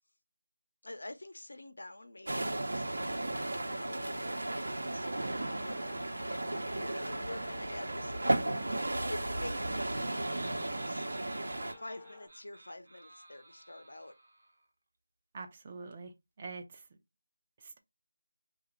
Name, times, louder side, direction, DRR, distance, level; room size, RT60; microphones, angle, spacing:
voice 1, 0.8-11.2 11.8-14.1, left 1 dB, 80° left, 0.7 m, -48 dB
sound 1, 2.3-11.7, right 1 dB, 70° right, 0.8 m, -35 dB
sound 2, 3.9-12.3, left 3 dB, 25° left, 0.6 m, -54 dB
Laughter, 9.5-14.7, right 2 dB, 45° right, 1.1 m, -54 dB
voice 2, 15.3-16.9 17.6-17.8, right 4 dB, 25° right, 0.5 m, -45 dB
2.9 x 2.4 x 4.3 m
figure-of-eight pair, 170°, 0 cm